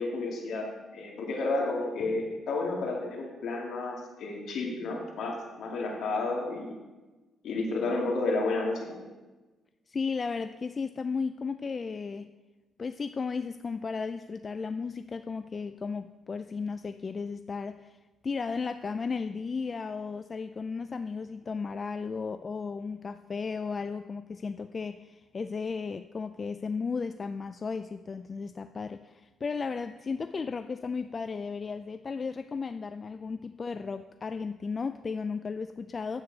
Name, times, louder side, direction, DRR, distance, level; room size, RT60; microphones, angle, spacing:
voice 1, 0.0-6.7 7.4-9.0, left 3 dB, 70° left, 0 dB, 2.2 m, -31 dB
voice 2, 9.9-12.3 12.8-18.0 18.2-36.2, left 5 dB, 35° left, 10 dB, 0.3 m, -34 dB
9.7 x 8.2 x 4.0 m, 1.2 s
cardioid pair, 90°, 0 cm